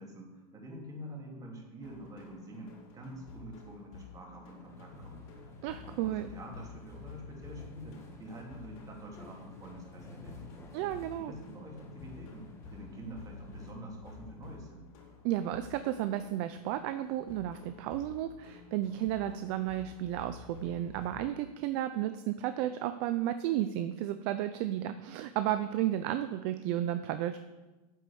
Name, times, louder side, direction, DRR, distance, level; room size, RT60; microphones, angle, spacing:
voice 1, 0.0-10.5 11.2-14.9, right 1 dB, 20° right, 0 dB, 2.5 m, -47 dB
sound 1, 1.8-21.3, left 5 dB, 55° left, 4.1 m, -51 dB
sound 2, 4.7-13.7, left 2 dB, 15° left, 1.5 m, -52 dB
voice 2, 5.6-6.3 10.7-11.3 15.2-27.4, right 12 dB, 45° right, 10 dB, 0.6 m, -33 dB
9.3 x 8.0 x 7.0 m, 1.1 s
supercardioid pair, 155°, 20 cm